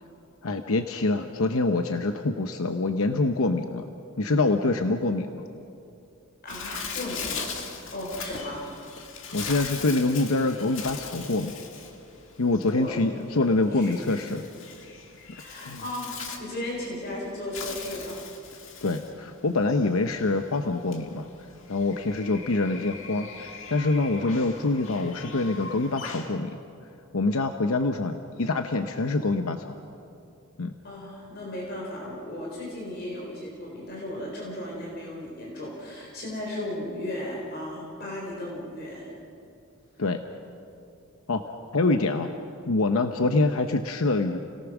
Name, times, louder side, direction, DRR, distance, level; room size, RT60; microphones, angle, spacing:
voice 1, 0.4-3.8 4.2-5.4 9.3-11.6 12.4-14.4 15.6-15.8 18.8-21.3 21.7-26.5 27.1-29.8 30.6-30.7 40.0-40.2 41.3-41.4 41.7-42.3 42.7-44.4, left 2 dB, 80° left, 7 dB, 0.8 m, -25 dB
voice 2, 6.4-8.7 12.7-13.0 13.7-14.3 15.3-18.3 30.8-39.1 39.9-40.0, left 1 dB, 45° left, -3 dB, 4.1 m, -36 dB
Bird, 6.5-26.3, left 5 dB, 60° left, 2.0 m, -40 dB
30.0 x 18.0 x 6.1 m, 2.6 s
head